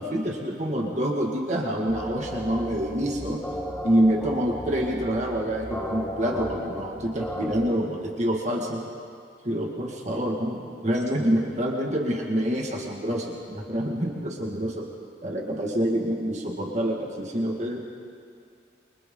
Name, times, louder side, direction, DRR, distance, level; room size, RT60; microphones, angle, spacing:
voice 1, 0.0-3.4 3.8-8.8 9.4-14.9 15.2-17.8, equal, 40° right, -1 dB, 2.0 m, -27 dB
sound 1, 1.9-7.6, equal, 5° left, 1.9 m, -35 dB
28.5 x 24.0 x 3.9 m, 2.3 s
head